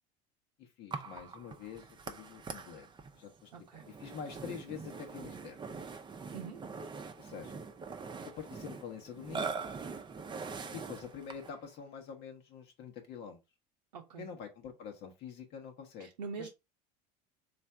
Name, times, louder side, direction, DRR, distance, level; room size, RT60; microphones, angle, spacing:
voice 1, 0.6-2.9 3.1-3.5 3.8-5.6 7.2-7.6 8.4-9.6 10.7-13.4 14.2-16.1 16.4-16.5, left 7 dB, 55° left, 1.1 m, -46 dB
Burping eructation, 0.9-11.6, right 5 dB, 20° right, 0.7 m, -43 dB
voice 2, 3.5-3.9 6.3-6.6 13.9-14.3 16.0-16.5, right 5 dB, 80° right, 0.6 m, -43 dB
3.3 x 2.6 x 4.3 m
hypercardioid pair, 75°, 21 cm